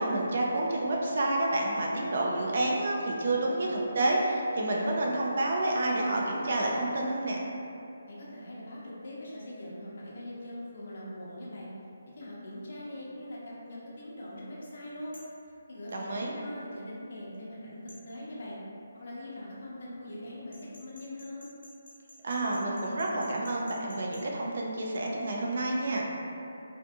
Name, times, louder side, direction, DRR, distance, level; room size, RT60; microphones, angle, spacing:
voice 1, 0.0-7.4 15.9-16.3 22.2-26.1, right 2 dB, 55° right, -2 dB, 0.4 m, -29 dB
voice 2, 8.1-11.7 12.1-15.2 15.7-18.6 18.9-21.5, left 1 dB, 55° left, -6 dB, 0.6 m, -42 dB
sound 1, 15.1-15.4 17.9-18.0 20.5-24.2, left 2 dB, 80° left, 0.9 m, -52 dB
2.5 x 2.5 x 2.3 m, 2.7 s
hypercardioid pair, 170°, 0 cm